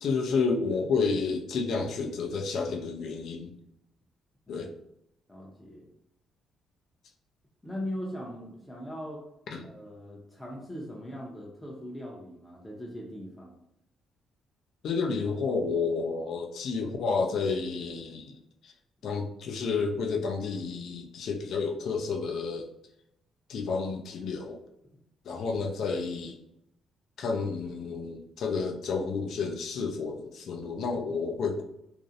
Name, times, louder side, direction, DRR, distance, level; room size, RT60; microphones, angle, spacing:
voice 1, 0.0-3.5 4.5-4.7 9.5-9.6 14.8-18.3 18.6-18.7 19.0-22.7 23.5-24.6 25.3-26.4 27.2-31.6, left 4 dB, 70° left, 2 dB, 0.4 m, -30 dB
voice 2, 5.3-5.9 7.6-9.2 9.6-13.6, equal, 10° left, -4 dB, 0.5 m, -40 dB
2.4 x 2.0 x 2.6 m, 0.82 s
cardioid pair, 90°, 0 cm